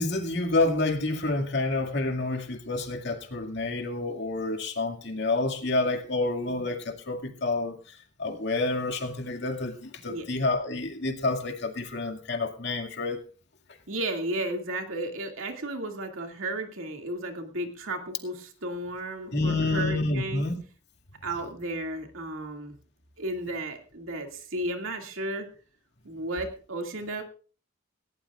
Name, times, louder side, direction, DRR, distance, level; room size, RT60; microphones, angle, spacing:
voice 1, 0.0-7.8 8.2-13.2 19.3-20.6, left 2 dB, 55° left, 4 dB, 2.3 m, -28 dB
voice 2, 13.9-20.5 21.2-22.8 23.2-25.5 26.0-27.2, right 1 dB, 70° right, 3 dB, 2.4 m, -34 dB
18.5 x 17.0 x 2.5 m, 0.39 s
head